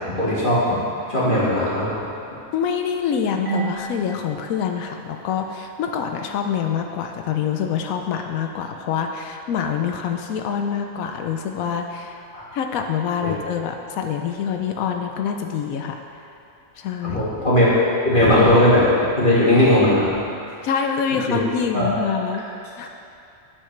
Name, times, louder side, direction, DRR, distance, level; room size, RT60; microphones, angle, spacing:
voice 1, 0.2-0.7 1.1-1.9 12.3-12.4 13.2-13.3 17.0-17.7 18.0-20.0 21.3-21.4 21.7-21.9, left 1 dB, 40° left, -10 dB, 1.8 m, -17 dB
voice 2, 2.5-12.3 12.5-16.2 16.8-17.2 20.6-22.4 22.8-22.9, left 7 dB, 85° left, 4 dB, 1.0 m, -26 dB
Marimba xylophone / Wood, 3.5-6.2, right 6 dB, 50° right, 1.7 m, -34 dB
9.9 x 7.3 x 3.2 m, 2.7 s
omnidirectional pair, 1.4 m